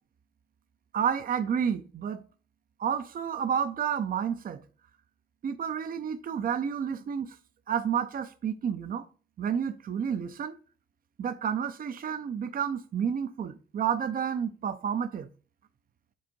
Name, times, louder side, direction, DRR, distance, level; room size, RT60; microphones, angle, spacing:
voice 1, 0.9-2.2 2.8-4.6 5.4-7.4 7.7-9.0 9.4-10.5 11.2-15.3, right 7 dB, 45° right, 0.6 m, -30 dB
5.3 x 3.5 x 5.3 m
cardioid pair, 90°, 20 cm